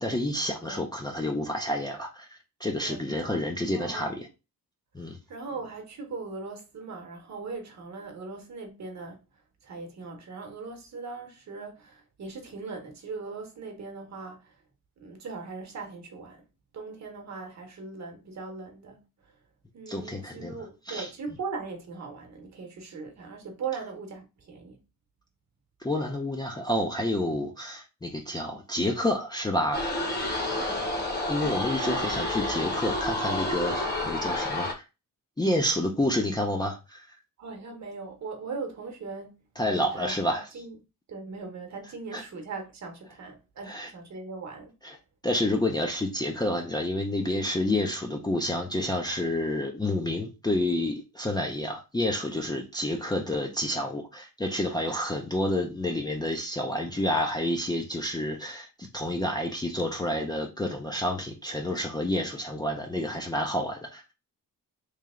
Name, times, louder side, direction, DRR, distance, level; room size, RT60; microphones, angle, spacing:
voice 1, 0.0-4.3 4.9-5.2 19.9-20.5 20.9-21.1 25.8-29.8 31.3-34.8 35.4-37.1 39.6-40.5 42.1-42.2 43.7-43.9 44.8-45.0 45.2-64.0, left 1 dB, 10° left, 0.4 m, -29 dB
voice 2, 2.8-3.4 3.7-4.2 5.3-9.2 9.6-14.6 15.0-16.4 16.7-19.0 19.7-24.8 30.5-30.9 37.4-40.8 41.1-44.7, right 4 dB, 50° right, 1.0 m, -39 dB
sound 1, 29.7-34.7, left 1 dB, 30° left, 1.0 m, -29 dB
3.2 x 2.8 x 3.6 m
wide cardioid pair, 145°, 35 cm